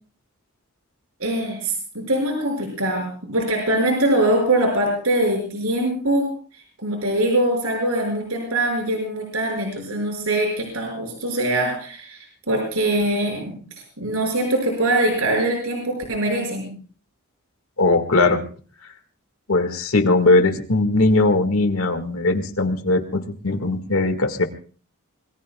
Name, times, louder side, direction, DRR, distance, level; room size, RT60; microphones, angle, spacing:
voice 1, 1.2-6.4 6.8-13.6 14.0-16.7, right 1 dB, 75° right, 2 dB, 5.8 m, -23 dB
voice 2, 17.8-18.4 19.5-24.4, left 2 dB, 70° left, 6 dB, 1.8 m, -19 dB
25.5 x 22.0 x 2.3 m, 0.40 s
head